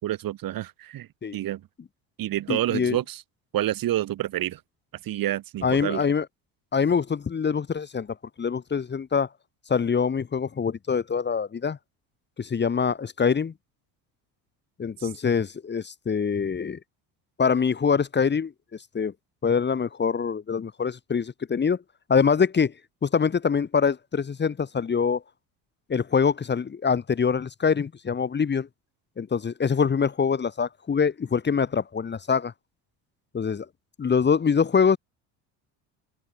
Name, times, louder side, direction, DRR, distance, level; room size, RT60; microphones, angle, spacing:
voice 1, 0.0-1.6 2.2-3.2 3.5-4.6 5.0-6.0 15.0-15.1, right 13 dB, 60° right, 5.4 m, -28 dB
voice 2, 2.5-3.0 5.6-6.3 6.7-8.1 8.4-9.3 9.7-11.8 12.4-13.5 14.8-16.8 17.4-18.5 18.9-19.1 19.4-21.8 22.1-22.7 23.0-25.2 25.9-28.7 29.2-32.5 33.3-33.6 34.0-35.0, left 6 dB, 25° left, 1.6 m, -24 dB
open air
supercardioid pair, 95°, 39 cm